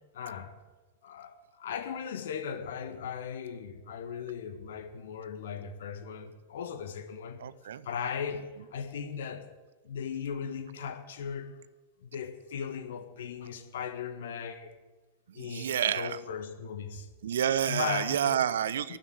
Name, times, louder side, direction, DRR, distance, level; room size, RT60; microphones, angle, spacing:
voice 1, 0.1-0.5 1.0-7.4 7.8-8.4 8.7-9.5 9.8-11.5 12.0-14.7 15.3-17.1 17.6-18.4 18.9-19.0, left 7 dB, 60° left, 8 dB, 1.8 m, -37 dB
voice 2, 7.4-7.9 15.3-16.2 17.2-19.0, right 9 dB, 65° right, 17 dB, 0.5 m, -29 dB
13.0 x 11.0 x 8.8 m, 1.2 s
figure-of-eight pair, 90°, 0 cm